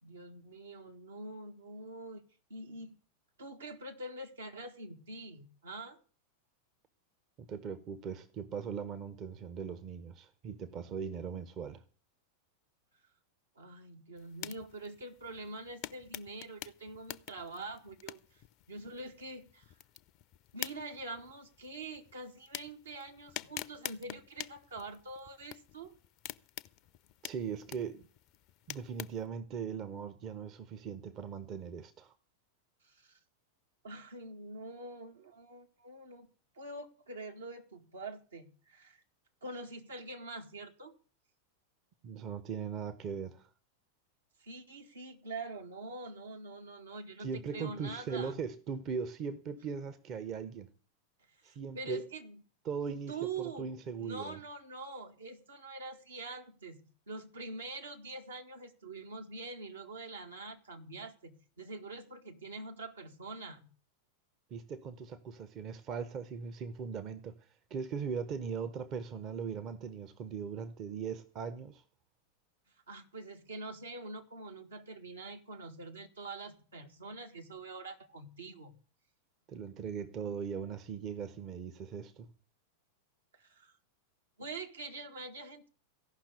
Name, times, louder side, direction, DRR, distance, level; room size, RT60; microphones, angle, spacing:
voice 1, 0.0-2.2 2.5-3.0 3.4-6.0 13.5-18.4 18.7-19.7 20.5-25.9 32.8-33.2 33.8-36.3 36.5-39.0 39.4-40.9 44.4-48.4 51.3-52.4 53.1-53.7 54.0-63.6 72.9-78.8 83.4-83.7 84.4-85.7, right 3 dB, 70° right, 1.6 m, -45 dB
voice 2, 7.4-11.8 27.2-28.0 28.7-32.1 42.0-43.5 47.2-50.7 51.4-52.0 52.6-54.4 64.5-71.8 79.5-82.3, right 6 dB, 35° right, 0.8 m, -39 dB
sound 1, 14.2-29.3, left 14 dB, 40° left, 0.5 m, -47 dB
15.0 x 5.9 x 8.2 m
figure-of-eight pair, 90°, 0 cm